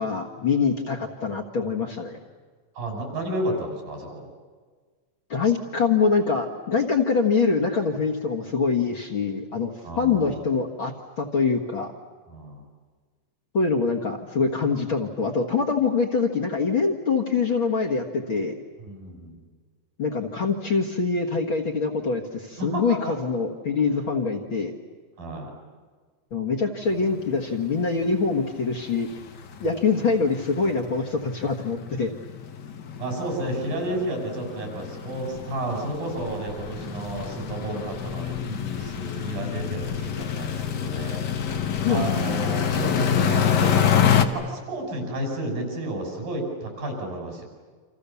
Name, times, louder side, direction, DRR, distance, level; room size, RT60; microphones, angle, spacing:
voice 1, 0.0-2.2 5.3-11.9 13.5-18.5 20.0-24.7 26.3-29.1 29.6-32.1 41.8-42.1, left 5 dB, 45° left, 5 dB, 1.9 m, -24 dB
voice 2, 2.8-4.3 9.8-10.4 12.3-12.6 18.8-19.4 22.6-23.2 25.2-25.5 33.0-41.2 41.9-47.4, right 1 dB, 80° right, 2 dB, 7.9 m, -31 dB
sound 1, 27.1-27.2 27.5-27.7 28.1-28.2 28.4-44.3, left 9 dB, 85° left, 0.9 m, -27 dB
29.0 x 26.5 x 7.1 m, 1.5 s
omnidirectional pair, 3.9 m